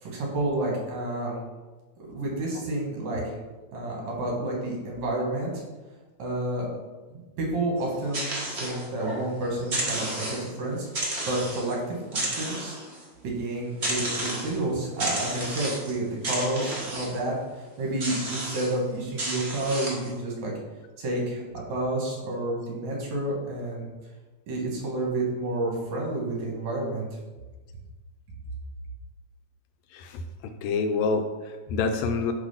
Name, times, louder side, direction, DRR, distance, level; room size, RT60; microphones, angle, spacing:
voice 1, 0.0-1.4 2.1-3.4 3.7-5.5 6.2-6.7 7.4-12.8 13.2-20.5 21.0-21.4 21.7-23.9 24.5-27.1, right 2 dB, 70° right, -2 dB, 2.8 m, -30 dB
sound 1, 7.8-9.3 9.6-10.6 10.9-11.7 12.1-13.0 13.8-14.6 15.0-15.9 16.2-17.2 18.0-18.7 19.2-20.1, right 1 dB, 35° right, 1.1 m, -32 dB
voice 2, 29.9-32.3, left 4 dB, 80° left, 7 dB, 1.7 m, -27 dB
7.4 x 3.4 x 5.5 m, 1.2 s
omnidirectional pair, 3.3 m